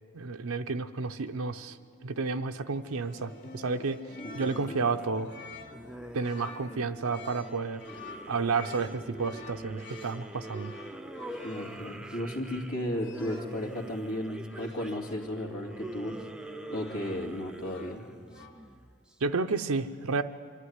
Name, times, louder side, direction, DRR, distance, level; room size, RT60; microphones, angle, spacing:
voice 1, 0.1-1.8 2.0-4.0 4.3-5.3 6.1-7.8 8.3-10.7 19.2-20.2, right 4 dB, 70° right, 7 dB, 0.6 m, -31 dB
sound 1, 1.3-1.7 2.8-13.7 14.5-15.1 16.1-17.4 17.6-18.6, left 3 dB, 55° left, 2.2 m, -50 dB
sound 2, 1.4-6.8, left 2 dB, 35° left, 0.7 m, -48 dB
sound 3, 4.2-19.1, right 1 dB, 5° right, 0.5 m, -44 dB
voice 2, 11.4-16.1 16.7-18.0, left 1 dB, 75° left, 1 dB, 2.5 m, -34 dB
25.0 x 11.5 x 9.6 m, 2.1 s
head